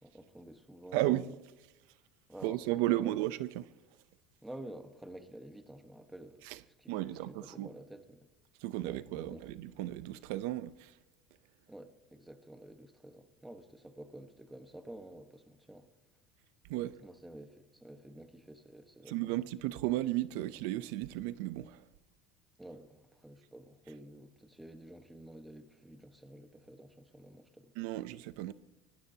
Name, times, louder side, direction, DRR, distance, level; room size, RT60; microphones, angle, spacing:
voice 1, 0.0-1.3 2.3-3.1 4.4-6.5 6.8-8.3 8.8-9.4 11.7-15.9 17.0-19.2 22.6-27.7, right 1 dB, 5° right, 1.3 m, -50 dB
voice 2, 0.9-1.3 2.4-3.7 6.4-6.6 6.9-7.7 8.6-10.9 16.7-16.9 19.1-21.8 27.8-28.5, right 15 dB, 75° right, 0.6 m, -34 dB
24.0 x 18.5 x 2.9 m
cardioid pair, 150°, 0 cm